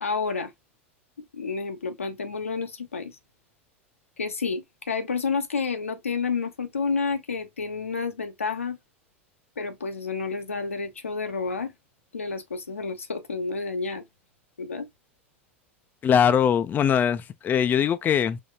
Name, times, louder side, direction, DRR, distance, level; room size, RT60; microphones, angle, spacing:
voice 1, 0.0-0.5 1.3-3.2 4.2-8.8 9.6-11.7 12.1-14.0 14.6-14.9, left 4 dB, 85° left, 0.9 m, -30 dB
voice 2, 16.0-18.4, left 8 dB, 25° left, 0.5 m, -21 dB
5.4 x 3.0 x 2.2 m
figure-of-eight pair, 85°, 7 cm